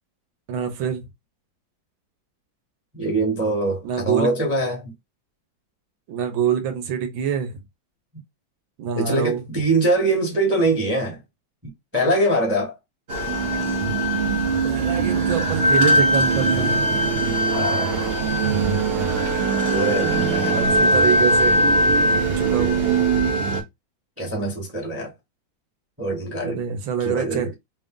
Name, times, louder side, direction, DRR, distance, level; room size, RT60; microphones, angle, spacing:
voice 1, 0.5-1.1 3.8-4.3 6.1-7.6 8.8-9.4 14.6-16.9 20.5-22.8 26.4-27.5, right 8 dB, 80° right, 1.6 m, -26 dB
voice 2, 2.9-4.9 8.9-11.2 11.9-12.7 16.9-17.0 17.5-17.9 19.7-20.6 24.2-25.1 26.0-26.6 27.0-27.5, right 2 dB, 10° right, 0.9 m, -23 dB
sound 1, 13.1-23.6, right 2 dB, 45° right, 0.8 m, -20 dB
3.4 x 2.6 x 3.6 m
omnidirectional pair, 2.1 m